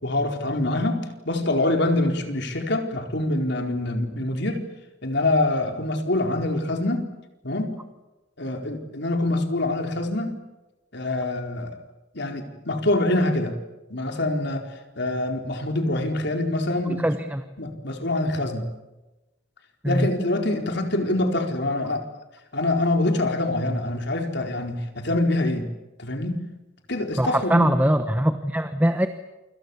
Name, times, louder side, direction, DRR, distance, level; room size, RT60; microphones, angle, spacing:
voice 1, 0.0-4.6 5.0-7.1 7.4-7.7 8.4-10.3 10.9-11.8 12.1-13.5 13.9-14.7 15.0-17.0 17.6-18.7 19.8-22.0 22.5-25.7 26.0-26.4 26.9-27.7, left 2 dB, 55° left, 4 dB, 4.4 m, -25 dB
voice 2, 17.0-17.4 19.8-20.1 27.2-29.1, right 1 dB, 10° right, 8 dB, 1.1 m, -21 dB
28.5 x 27.0 x 7.2 m, 1.1 s
head